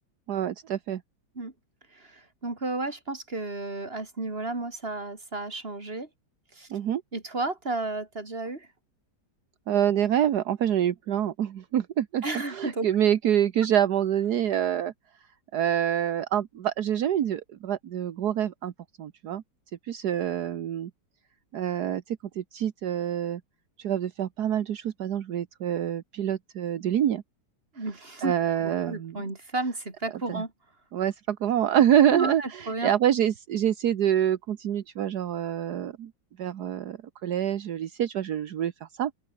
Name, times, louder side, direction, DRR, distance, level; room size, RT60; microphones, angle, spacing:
voice 1, 0.3-1.0 6.7-7.0 9.7-12.2 12.5-14.9 15.5-18.7 19.0-19.4 19.8-20.9 21.5-23.4 23.8-27.2 28.2-29.2 30.3-30.4 30.9-36.1 36.4-39.1, right 10 dB, 70° right, 1.6 m, -26 dB
voice 2, 1.9-6.1 6.6-6.7 7.1-8.7 12.2-12.9 27.8-28.3 28.6-30.5 32.1-32.9, right 2 dB, 35° right, 3.9 m, -32 dB
open air
omnidirectional pair, 1.8 m